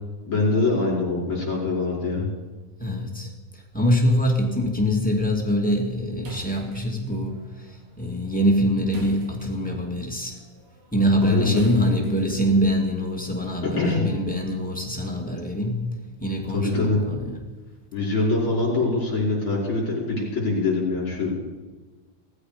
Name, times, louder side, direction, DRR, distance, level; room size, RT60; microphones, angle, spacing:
voice 1, 0.3-2.3 11.2-11.6 13.8-14.0 16.5-17.0 17.9-21.4, left 3 dB, 30° left, -4 dB, 5.5 m, -23 dB
voice 2, 2.8-10.4 10.9-15.9 16.2-17.4, equal, 10° left, 0 dB, 0.5 m, -24 dB
sound 1, 6.2-12.7, right 4 dB, 85° right, 6.2 m, -43 dB
18.5 x 15.0 x 5.1 m, 1.3 s
omnidirectional pair, 4.5 m